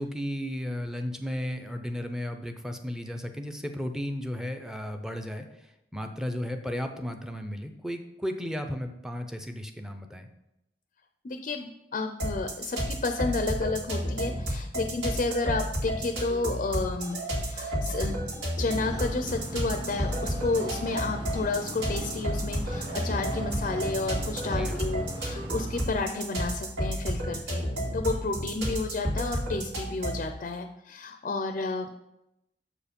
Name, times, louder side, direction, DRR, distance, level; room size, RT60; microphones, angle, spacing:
voice 1, 0.0-5.5 5.9-10.3 24.4-24.9, equal, 5° right, 6 dB, 0.6 m, -34 dB
voice 2, 11.2-18.2 18.6-27.6 27.9-31.9, left 3 dB, 45° left, 6 dB, 0.5 m, -31 dB
sound 1, 12.2-30.3, equal, 75° right, 2.4 m, -31 dB
sound 2, 17.0-19.2 19.9-22.3 22.7-24.9 26.0-26.2, right 2 dB, 45° right, 2.0 m, -42 dB
sound 3, 18.8-25.8, equal, 30° right, 1.0 m, -40 dB
7.0 x 4.8 x 5.2 m, 0.87 s
head